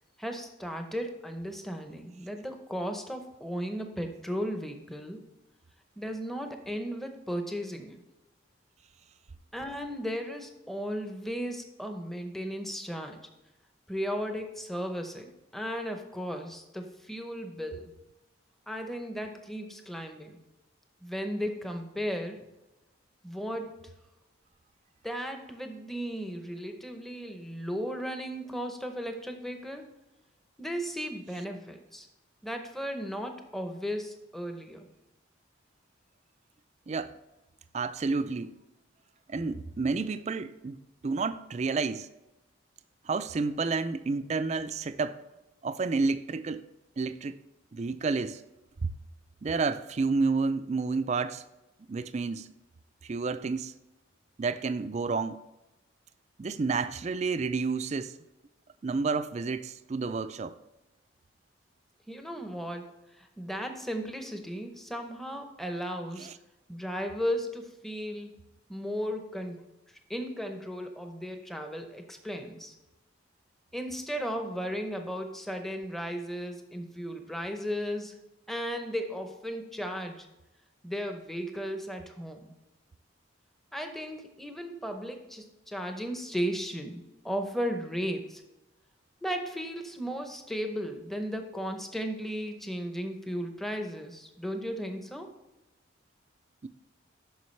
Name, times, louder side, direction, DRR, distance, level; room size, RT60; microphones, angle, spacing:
voice 1, 0.2-5.2 6.0-8.0 9.5-13.2 13.9-17.9 18.7-20.4 21.0-22.5 23.2-23.7 25.0-29.9 30.6-32.1 32.4-34.9 62.1-66.3 66.7-68.4 68.7-69.6 70.1-72.7 73.7-78.2 78.5-80.3 80.8-82.5 83.7-88.4 89.2-95.3, equal, ahead, 0.7 m, -35 dB
voice 2, 37.7-38.6 39.3-42.1 43.1-45.2 45.6-46.6 47.0-47.4 47.7-48.4 48.8-48.9 49.4-51.4 51.9-52.5 53.0-53.7 54.4-55.4 56.4-58.2 58.8-60.6 66.2-66.3 96.6-96.7, right 4 dB, 35° right, 0.3 m, -30 dB
9.3 x 6.5 x 3.2 m
head